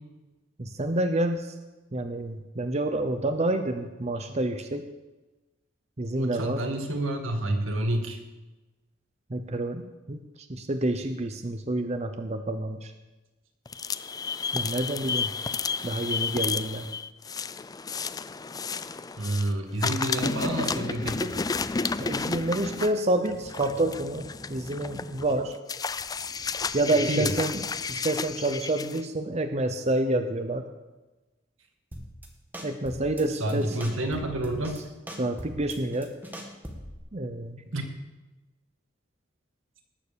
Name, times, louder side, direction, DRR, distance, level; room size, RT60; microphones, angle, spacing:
voice 1, 0.6-1.5 1.9-4.8 6.0-6.6 9.3-9.8 10.1-10.2 10.5-12.9 14.5-15.3 15.8-16.9 22.0-25.5 26.7-30.7 32.6-33.8 35.2-36.1 37.1-37.6, right 1 dB, 35° right, 7 dB, 0.8 m, -28 dB
voice 2, 6.1-8.2 19.2-21.4 27.1-27.3 33.4-34.8 37.7-37.9, right 1 dB, 85° right, 4 dB, 2.0 m, -29 dB
sound 1, 13.7-19.5 19.8-29.0, left 5 dB, 20° left, 0.4 m, -32 dB
sound 2, 31.9-32.3 32.5-33.2 33.5-34.8 35.1-37.0, equal, 10° right, 1.9 m, -40 dB
18.5 x 6.9 x 6.9 m, 1.1 s
head